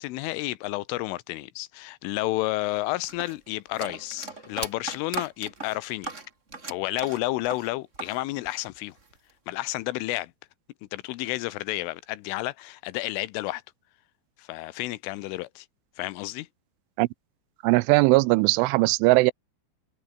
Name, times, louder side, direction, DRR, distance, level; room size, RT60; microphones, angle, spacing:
voice 1, 0.0-6.1 6.7-9.0 9.5-10.3 10.9-13.6 14.4-15.7 16.0-16.5, left 18 dB, 85° left, 3.5 m, -31 dB
sound 1, 3.1-8.2 8.4-9.3, right 3 dB, 20° right, 2.3 m, -37 dB
voice 2, 17.6-19.3, right 23 dB, 85° right, 3.0 m, -19 dB
omnidirectional pair, 5.6 m